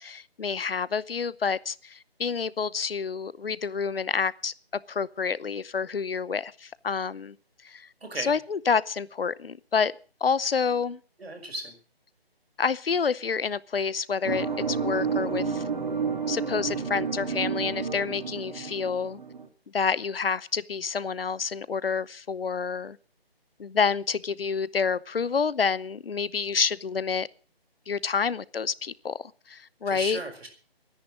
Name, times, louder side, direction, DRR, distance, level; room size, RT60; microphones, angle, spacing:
voice 1, 0.0-4.5 4.9-7.3 7.6-7.9 8.2-9.9 10.2-11.0 12.6-15.6 16.3-19.2 19.7-23.0 23.6-27.3 27.9-29.2 29.5-30.2, left 5 dB, 65° left, 0.8 m, -28 dB
voice 2, 8.0-8.3 11.2-11.8 18.6-18.7 29.9-30.5, right 2 dB, 75° right, 5.7 m, -36 dB
sound 1, 14.2-19.5, right 5 dB, 50° right, 2.5 m, -30 dB
19.5 x 10.5 x 6.1 m
figure-of-eight pair, 165°, 30 cm